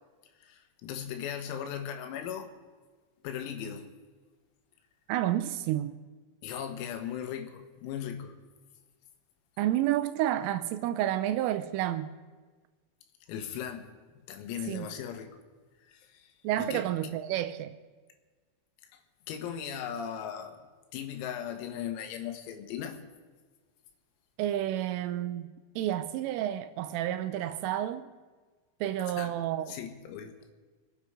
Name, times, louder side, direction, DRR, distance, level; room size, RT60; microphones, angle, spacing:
voice 1, 0.4-2.5 3.2-3.9 6.4-8.4 13.3-13.9 14.3-15.3 15.9-16.3 16.6-16.9 18.9-19.0 19.3-20.6 20.9-23.0 29.2-29.3 29.7-30.4, left 9 dB, 85° left, 4.1 m, -38 dB
voice 2, 5.1-5.9 9.6-12.1 14.7-14.9 16.4-17.7 24.4-25.5 25.8-28.1 28.8-29.7, right 12 dB, 80° right, 3.1 m, -30 dB
26.0 x 9.5 x 5.0 m
omnidirectional pair, 6.0 m